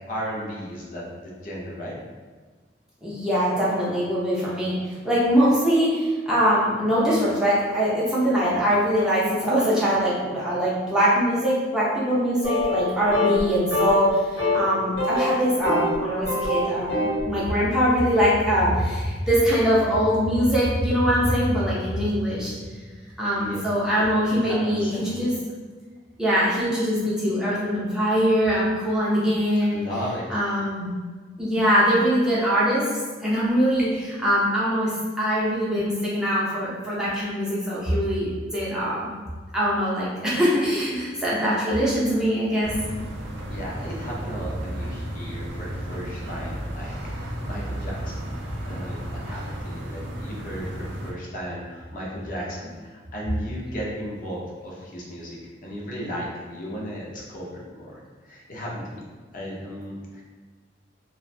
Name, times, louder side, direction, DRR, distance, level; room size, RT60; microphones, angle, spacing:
voice 1, 0.1-2.0 23.3-23.6 23.9-25.3 29.7-30.3 43.5-48.2 48.6-59.0 59.3-60.2, equal, 50° left, -4 dB, 0.5 m, -35 dB
voice 2, 3.0-17.0 17.2-22.6 23.2-25.3 26.2-29.9 30.3-30.9 31.4-32.9 33.2-39.1 39.5-42.7, equal, 5° right, -8 dB, 0.5 m, -22 dB
sound 1, 12.4-12.9 13.1-13.4 13.7-14.1 14.4-14.6 15.0-16.0 16.2-17.2, left 2 dB, 75° left, 0.9 m, -24 dB
sound 2, 42.6-51.1, equal, 85° right, 0.4 m, -33 dB
2.4 x 2.1 x 2.5 m, 1.4 s
head